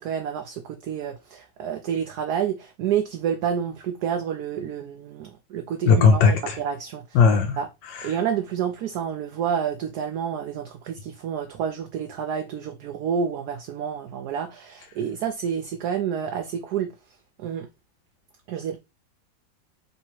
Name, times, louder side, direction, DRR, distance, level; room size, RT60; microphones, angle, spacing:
voice 1, 0.0-7.2 7.6-7.7 8.0-16.9 17.4-17.7 18.5-18.8, right 8 dB, 70° right, 1.0 m, -29 dB
voice 2, 5.9-6.6 7.1-7.6 7.9-8.1, left 5 dB, 85° left, 1.4 m, -17 dB
3.4 x 2.9 x 4.4 m
omnidirectional pair, 2.0 m